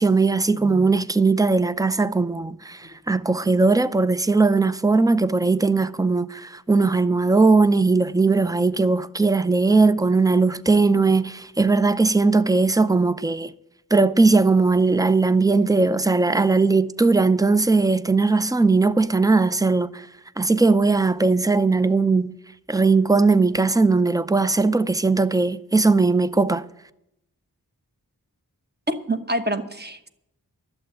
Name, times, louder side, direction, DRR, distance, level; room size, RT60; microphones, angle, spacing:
voice 1, 0.0-2.8 3.1-13.5 13.9-20.0 20.4-22.4 22.7-26.6, right 3 dB, 10° right, 0.5 m, -19 dB
voice 2, 28.9-30.1, right 1 dB, 25° right, 1.1 m, -26 dB
11.5 x 7.7 x 8.8 m
wide cardioid pair, 65°, 38 cm